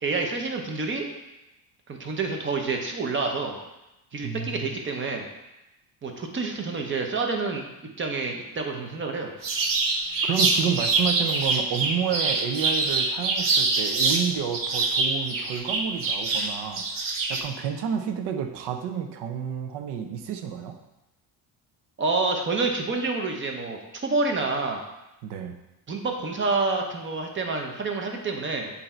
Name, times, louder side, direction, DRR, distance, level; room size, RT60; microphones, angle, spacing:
voice 1, 0.0-1.0 1.9-3.6 4.1-5.3 6.0-7.6 8.0-9.3 22.0-24.8 25.9-28.7, right 3 dB, 30° right, 3 dB, 0.8 m, -28 dB
voice 2, 4.2-4.7 10.3-16.8 17.3-20.8 25.2-25.6, right 8 dB, 80° right, 6 dB, 0.8 m, -30 dB
sound 1, 9.4-14.2 14.5-17.4, right 3 dB, 55° right, 1.0 m, -24 dB
7.8 x 2.8 x 4.3 m, 0.97 s
cardioid pair, 135°, 41 cm